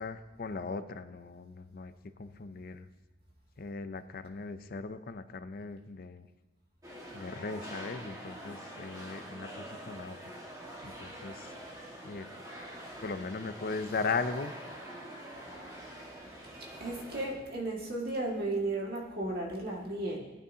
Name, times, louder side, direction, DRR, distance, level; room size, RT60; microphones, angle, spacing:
voice 1, 0.0-1.9 2.2-2.9 3.6-6.3 7.1-10.4 10.8-11.5 12.0-12.3 13.0-14.5, left 4 dB, 55° left, 11 dB, 0.5 m, -38 dB
sound 1, 6.8-17.3, right 1 dB, 20° right, 1.6 m, -45 dB
voice 2, 16.8-20.2, right 2 dB, 60° right, -2 dB, 2.0 m, -34 dB
15.0 x 9.3 x 2.8 m, 1.1 s
head